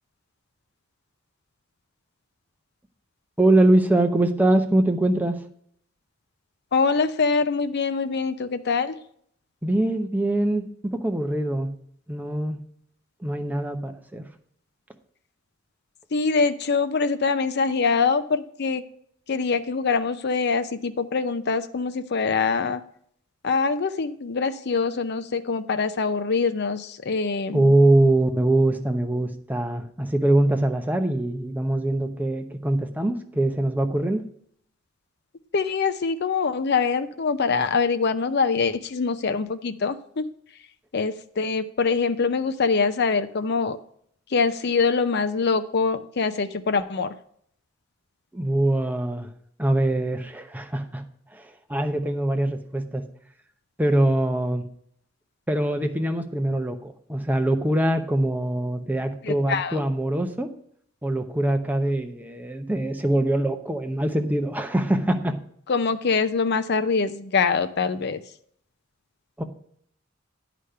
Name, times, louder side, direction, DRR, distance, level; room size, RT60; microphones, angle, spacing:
voice 1, 3.4-5.4 9.6-11.7 12.1-12.6 13.2-14.2 27.5-34.2 48.3-49.3 49.6-51.0 51.3-51.4 51.7-53.1 53.8-54.6 55.5-60.5 61.0-65.4 69.4-69.5, right 1 dB, 10° right, 6 dB, 0.8 m, -23 dB
voice 2, 6.7-9.0 16.1-18.8 19.3-22.8 23.4-27.7 35.5-40.3 40.9-43.8 44.3-47.1 59.2-59.8 65.7-68.2, left 4 dB, 55° left, 11 dB, 0.6 m, -24 dB
9.9 x 5.1 x 5.6 m, 0.66 s
head